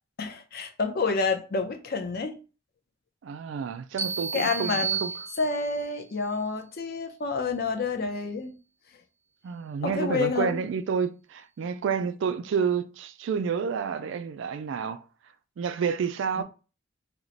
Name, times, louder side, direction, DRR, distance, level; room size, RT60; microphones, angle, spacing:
voice 1, 0.2-2.4 4.3-5.0 5.4-8.5 9.8-10.6 16.4-16.5, left 4 dB, 50° left, 0.5 m, -28 dB
voice 2, 3.2-5.1 9.4-15.0 15.6-16.4, right 6 dB, 75° right, 0.3 m, -29 dB
sound 1, 4.0-5.9, right 6 dB, 15° right, 0.6 m, -32 dB
3.0 x 2.1 x 3.9 m
head